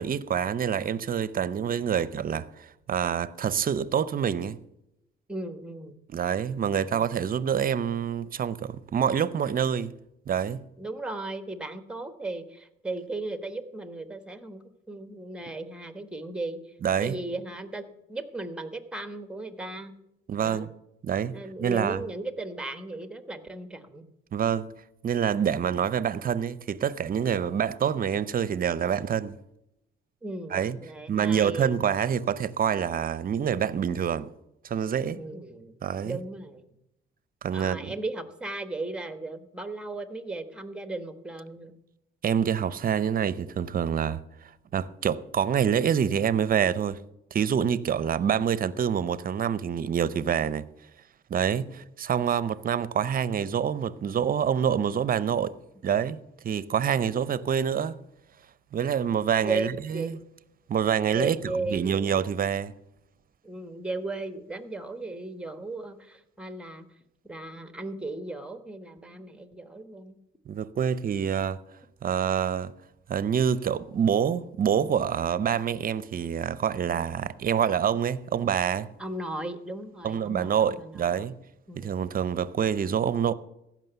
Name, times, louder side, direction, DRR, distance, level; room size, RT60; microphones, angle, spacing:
voice 1, 0.0-4.6 6.1-9.9 10.3-10.6 16.8-17.2 20.3-20.7 21.0-22.0 24.3-24.7 25.0-29.4 30.5-30.8 31.1-34.3 34.6-35.2 35.8-36.2 37.4-37.9 42.2-44.2 44.7-47.0 47.3-50.7 51.3-55.5 55.8-56.2 56.4-58.0 58.7-60.2 60.7-61.4 61.7-62.7 70.5-71.6 72.0-72.7 73.1-78.9 80.0-81.4 81.8-83.3, right 8 dB, 45° right, 0.6 m, -26 dB
voice 2, 5.3-6.0 10.8-20.0 20.4-20.7 21.3-24.0 30.2-31.8 35.1-36.7 37.5-41.7 51.7-51.8 59.4-60.1 61.1-62.1 63.4-66.8 67.2-70.1 76.9-77.2 79.0-81.2 81.7-82.0, right 2 dB, 5° right, 1.2 m, -36 dB
15.0 x 6.1 x 6.8 m
cardioid pair, 90°, 20 cm